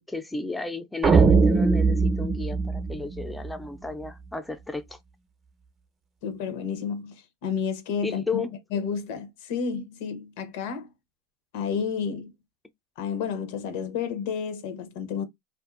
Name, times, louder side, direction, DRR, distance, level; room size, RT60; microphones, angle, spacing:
voice 1, 0.0-5.0 8.0-8.5, left 3 dB, 5° left, 0.5 m, -33 dB
sound 1, 1.0-3.5, right 4 dB, 30° right, 0.7 m, -20 dB
voice 2, 6.2-8.4 8.7-10.9 11.5-12.3 13.0-15.2, left 6 dB, 70° left, 0.8 m, -31 dB
2.6 x 2.6 x 2.4 m
supercardioid pair, 110°, 0 cm